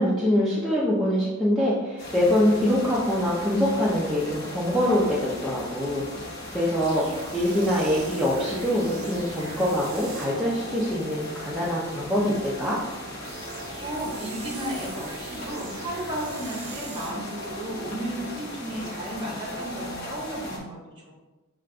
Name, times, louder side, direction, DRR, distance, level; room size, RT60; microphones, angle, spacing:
voice 1, 0.0-12.8, left 1 dB, ahead, -9 dB, 0.5 m, -24 dB
sound 1, 2.0-20.6, left 1 dB, 55° left, 0.9 m, -38 dB
sound 2, 6.8-20.5, right 3 dB, 75° right, 0.6 m, -43 dB
voice 2, 13.8-21.1, right 1 dB, 25° right, -4 dB, 1.0 m, -34 dB
6.2 x 2.5 x 2.2 m, 1.1 s
head